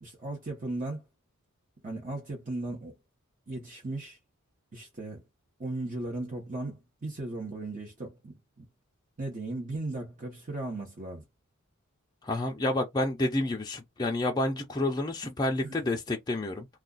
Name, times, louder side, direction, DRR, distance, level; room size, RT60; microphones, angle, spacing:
voice 1, 0.0-1.0 1.8-2.9 3.5-4.2 4.7-5.2 5.6-8.6 9.2-11.2 15.6-15.8, right 2 dB, 40° right, 0.9 m, -37 dB
voice 2, 12.2-16.7, left 1 dB, 20° left, 0.5 m, -29 dB
2.4 x 2.3 x 3.8 m
head